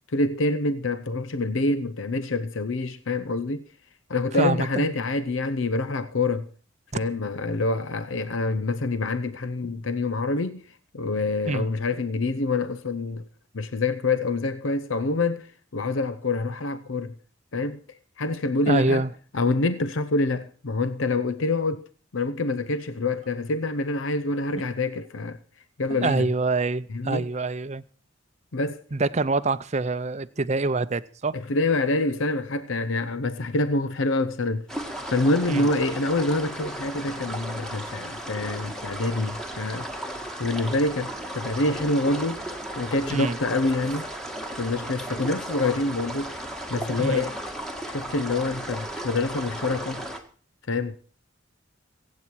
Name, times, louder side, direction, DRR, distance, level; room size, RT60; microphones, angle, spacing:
voice 1, 0.1-3.6 4.1-6.5 6.9-10.6 10.9-13.2 13.5-15.5 15.7-17.1 17.5-17.8 18.2-19.0 19.3-21.8 22.1-25.4 25.8-26.3 26.9-27.3 28.5-28.8 31.3-34.7 35.1-39.9 40.4-42.4 42.8-44.1 44.6-46.3 46.7-47.4 47.9-50.1 50.7-51.0, left 2 dB, 75° left, 0.7 m, -26 dB
voice 2, 4.3-4.9 11.5-11.7 18.7-19.1 25.9-27.8 28.9-31.3 35.5-35.7 43.1-43.4 47.0-47.3, right 3 dB, 35° right, 0.6 m, -25 dB
sound 1, 34.7-50.2, right 1 dB, 5° left, 1.7 m, -35 dB
24.5 x 8.6 x 4.6 m
head